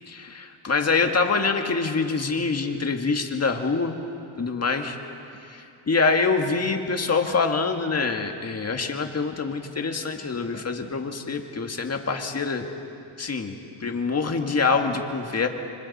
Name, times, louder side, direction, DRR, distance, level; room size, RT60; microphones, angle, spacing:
voice 1, 0.1-4.0 4.4-5.0 5.5-5.6 5.9-12.6 13.2-13.6 13.8-15.5, left 4 dB, 30° left, 4 dB, 1.8 m, -25 dB
26.5 x 25.5 x 4.2 m, 2.6 s
cardioid pair, 100°, 49 cm